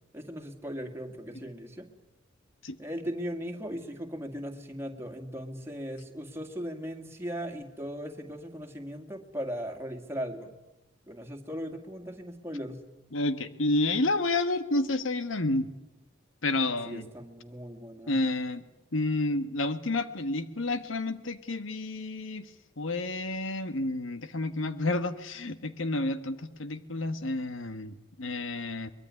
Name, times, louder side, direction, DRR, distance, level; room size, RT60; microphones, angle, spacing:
voice 1, 0.1-1.9 2.8-10.5 11.1-12.8 16.9-18.1, equal, 10° right, 4 dB, 2.2 m, -38 dB
voice 2, 13.1-15.7 16.4-17.0 18.1-18.6 18.9-22.5 22.8-28.9, left 2 dB, 85° left, 11 dB, 1.3 m, -30 dB
23.5 x 21.5 x 9.7 m, 0.98 s
head